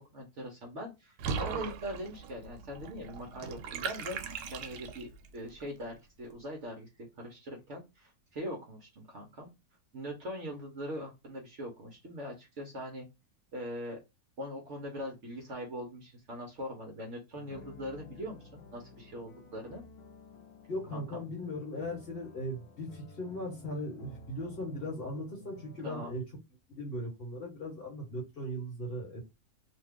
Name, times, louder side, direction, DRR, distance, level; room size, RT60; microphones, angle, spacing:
voice 1, 0.0-4.2 4.5-9.5 9.9-13.1 13.5-14.0 14.4-19.8 20.9-21.2 25.8-26.1, equal, 55° right, 1 dB, 0.9 m, -41 dB
Water / Bathtub (filling or washing), 1.2-5.3, right 6 dB, 85° right, 1.2 m, -39 dB
sound 1, 17.4-25.9, left 1 dB, 70° left, 1.2 m, -52 dB
voice 2, 20.7-26.2 26.7-29.2, left 1 dB, 40° left, -1 dB, 1.2 m, -38 dB
2.8 x 2.3 x 3.4 m, 0.24 s
omnidirectional pair, 1.7 m